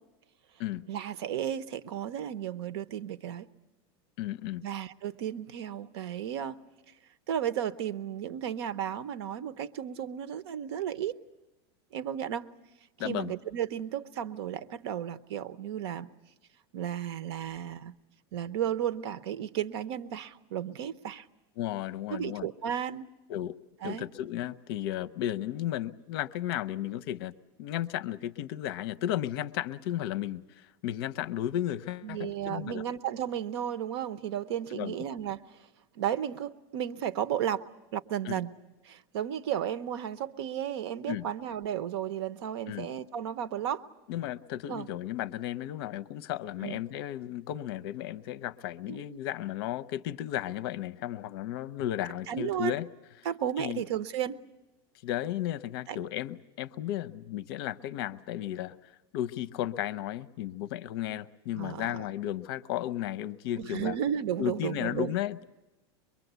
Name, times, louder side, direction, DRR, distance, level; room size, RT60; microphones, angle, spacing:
voice 1, 0.9-3.5 4.6-6.6 7.3-11.2 11.9-12.5 13.0-16.1 16.7-17.9 18.3-21.3 22.1-23.1 23.8-24.0 32.0-35.6 35.9-37.6 37.9-38.5 38.8-43.8 44.7-44.9 46.6-46.8 48.9-49.2 52.3-52.7 53.2-54.4 55.9-56.0 61.6-62.0 63.6-65.1, right 10 dB, 80° right, 14 dB, 0.9 m, -34 dB
voice 2, 4.2-4.6 13.0-13.3 21.6-22.5 23.3-23.6 23.8-27.3 27.6-32.9 34.7-35.0 38.3-38.4 41.1-41.2 42.7-42.9 44.1-52.9 53.6-53.8 55.0-58.8 59.1-63.9 64.4-65.4, left 12 dB, 65° left, 15 dB, 0.7 m, -34 dB
23.0 x 23.0 x 8.1 m, 1.0 s
supercardioid pair, 155°, 14 cm